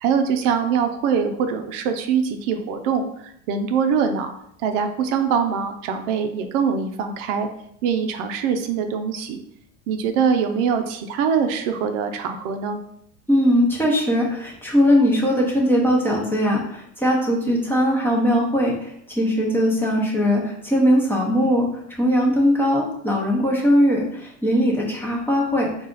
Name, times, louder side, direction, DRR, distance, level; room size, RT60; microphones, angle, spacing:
voice 1, 0.0-4.3 4.6-7.5 7.8-9.4 9.9-12.8, right 6 dB, 85° right, 7 dB, 0.6 m, -23 dB
voice 2, 13.3-25.9, equal, 5° left, -3 dB, 0.8 m, -20 dB
4.1 x 2.4 x 3.8 m, 0.71 s
cardioid pair, 140°, 36 cm